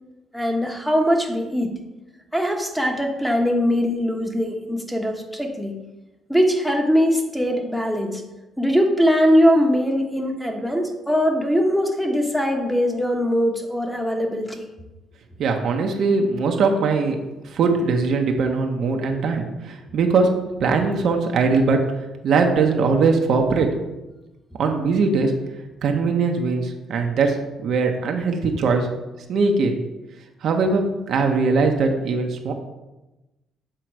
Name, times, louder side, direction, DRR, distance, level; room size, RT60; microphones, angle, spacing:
voice 1, 0.3-1.7 2.3-5.8 6.3-8.2 8.6-14.6, equal, ahead, 2 dB, 1.2 m, -21 dB
voice 2, 15.4-17.2 17.5-20.3 20.6-21.8 22.2-23.7 24.6-25.3 25.8-27.4 27.6-28.9 29.3-29.8 30.4-32.5, right 4 dB, 65° right, 3 dB, 0.9 m, -20 dB
7.7 x 3.8 x 4.6 m, 1.0 s
supercardioid pair, 75°, 0 cm